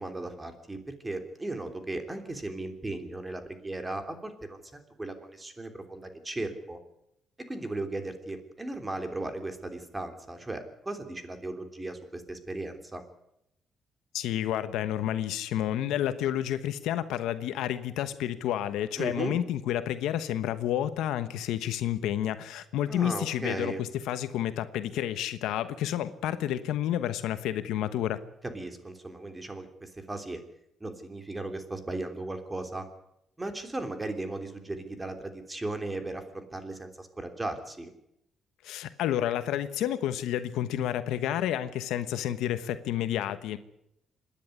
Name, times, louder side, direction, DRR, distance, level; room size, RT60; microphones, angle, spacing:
voice 1, 0.0-6.8 7.5-13.0 19.0-19.3 22.9-23.8 28.4-30.4 30.8-32.9 33.4-37.9, right 2 dB, 15° right, 7 dB, 3.2 m, -36 dB
voice 2, 14.1-28.2 38.6-43.6, left 11 dB, 90° left, 12 dB, 1.1 m, -30 dB
26.5 x 10.5 x 9.7 m, 0.80 s
cardioid pair, 90°, 0 cm